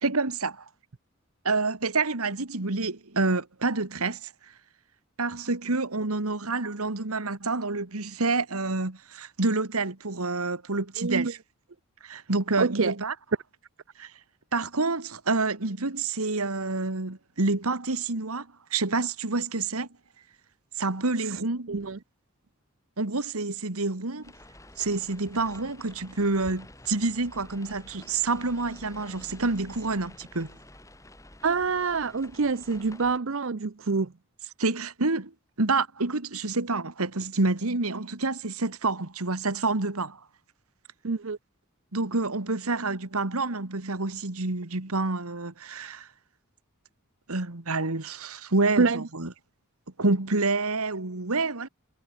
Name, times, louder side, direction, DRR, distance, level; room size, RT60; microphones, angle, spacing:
voice 1, 0.0-0.6 1.4-4.3 5.2-11.4 12.0-13.1 14.0-14.1 14.5-19.9 20.8-21.8 23.0-24.3 24.8-30.5 34.6-35.3 35.6-40.2 41.9-46.1 47.3-49.3 50.0-51.7, right 3 dB, 85° right, 2.0 m, -28 dB
voice 2, 11.0-11.3 12.6-12.9 21.2-21.4 21.7-22.0 31.4-34.1 41.0-41.4 48.8-49.0, right 4 dB, 65° right, 0.7 m, -26 dB
sound 1, 24.2-33.2, left 1 dB, 15° left, 5.6 m, -49 dB
head